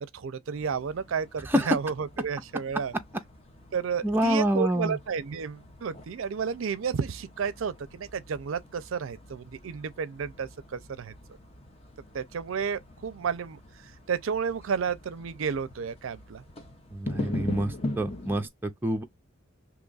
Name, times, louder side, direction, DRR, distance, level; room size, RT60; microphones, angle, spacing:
voice 1, 0.0-2.9 3.7-11.1 12.1-16.4, right 6 dB, 70° right, 0.4 m, -32 dB
sound 1, 0.5-18.5, left 2 dB, 30° left, 0.7 m, -42 dB
voice 2, 4.0-5.0 16.9-19.0, equal, 10° right, 0.5 m, -27 dB
2.9 x 2.2 x 3.8 m
head